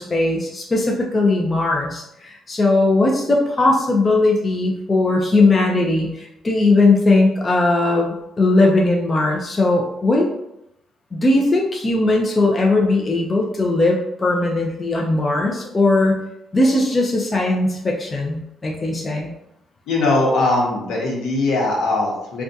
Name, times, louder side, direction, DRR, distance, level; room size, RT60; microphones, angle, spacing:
voice 1, 0.0-2.0 2.5-10.3 11.1-16.1 16.5-19.3, left 2 dB, 30° left, -1 dB, 0.5 m, -18 dB
voice 2, 19.9-22.4, left 2 dB, 85° left, -3 dB, 1.0 m, -20 dB
3.3 x 2.3 x 2.6 m, 0.82 s
cardioid pair, 90°, 0 cm